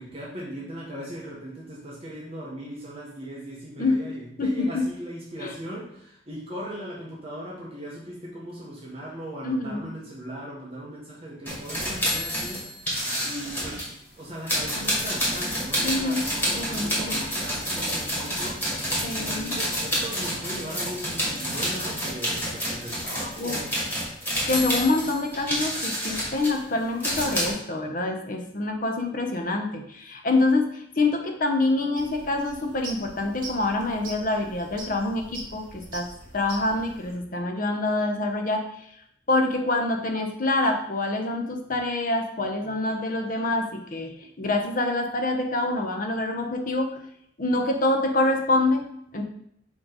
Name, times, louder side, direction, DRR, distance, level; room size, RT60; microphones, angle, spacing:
voice 1, 0.0-13.9 14.2-23.8, right 1 dB, 35° right, -5 dB, 1.3 m, -38 dB
voice 2, 4.4-4.9 9.4-9.9 15.8-16.2 16.5-17.1 19.0-19.6 23.4-23.6 24.5-36.1 36.3-38.7 39.3-44.1 44.4-47.0 47.4-48.8 49.1-49.2, left 2 dB, 50° left, 4 dB, 0.9 m, -26 dB
sound 1, 11.5-13.9 14.5-27.5, equal, 10° left, 2.1 m, -29 dB
sound 2, 32.0-37.1, right 2 dB, 50° right, 1.4 m, -43 dB
7.2 x 3.3 x 4.0 m, 0.71 s
head